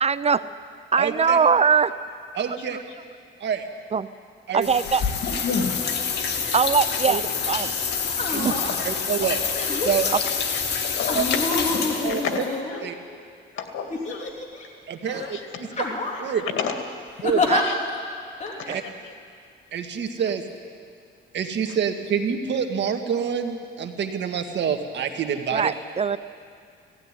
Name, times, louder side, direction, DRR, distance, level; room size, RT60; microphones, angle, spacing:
voice 1, 0.0-0.4 0.9-2.0 2.5-2.8 3.9-4.1 4.5-5.0 6.5-7.7 8.4-8.5 10.1-10.2 15.1-15.2 17.5-17.6 18.7-18.8 25.5-26.2, right 6 dB, 30° right, 15 dB, 0.5 m, -22 dB
voice 2, 1.0-1.4 2.4-2.8 3.4-3.7 4.5-4.7 7.1-7.2 8.3-8.5 8.9-9.4 9.8-10.1 11.2-11.3 12.0-12.2 12.8-13.0 14.9-15.4 15.8-15.9 16.2-16.4 17.2-17.5 18.7-18.8 19.7-20.4 21.3-25.7, right 7 dB, 65° right, 6 dB, 1.8 m, -26 dB
sound 1, 4.6-12.5, left 6 dB, 60° left, 2.4 m, -27 dB
voice 3, 5.2-6.6 8.5-8.9 10.5-12.8 13.5-14.3 15.1-15.7 16.3-16.8 17.5-17.8 18.5-18.9 21.7-21.8, left 6 dB, 80° left, 5 dB, 2.2 m, -32 dB
sound 2, 7.4-7.6 8.1-8.8 9.6-10.1 11.1-13.1 13.9-14.7 15.1-15.3 15.7-16.3 17.2-17.6 18.4-18.5, left 3 dB, 35° left, 3.2 m, -27 dB
18.0 x 15.0 x 9.8 m, 2.3 s
cardioid pair, 90°, 20 cm